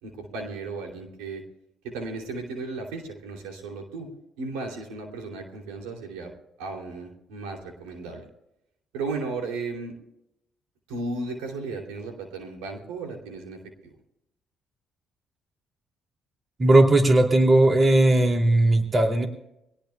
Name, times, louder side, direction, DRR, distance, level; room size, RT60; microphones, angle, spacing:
voice 1, 0.0-1.4 1.8-6.3 6.6-8.3 8.9-9.9 10.9-14.0, right 3 dB, 90° right, 2 dB, 2.8 m, -35 dB
voice 2, 16.6-19.3, right 1 dB, 35° right, 3 dB, 2.7 m, -18 dB
23.5 x 18.0 x 2.3 m, 0.83 s
supercardioid pair, 60°, 0 cm